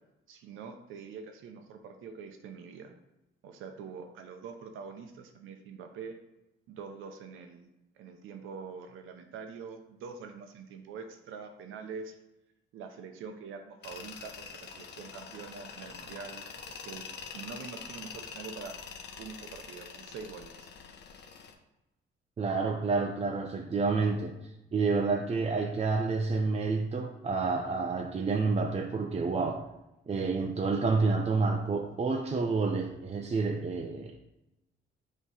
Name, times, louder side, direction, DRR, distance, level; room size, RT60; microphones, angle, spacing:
voice 1, 0.3-2.9 3.4-6.2 6.7-7.7 8.0-12.2 12.7-17.1 17.3-18.8 19.2-20.7, right 5 dB, 85° right, 6 dB, 0.8 m, -44 dB
Tools, 13.8-21.5, left 6 dB, 60° left, 0.9 m, -45 dB
voice 2, 22.4-24.3 24.7-29.7 30.1-34.2, right 4 dB, 30° right, 3 dB, 0.6 m, -29 dB
6.4 x 3.2 x 5.5 m, 0.95 s
cardioid pair, 90°, 20 cm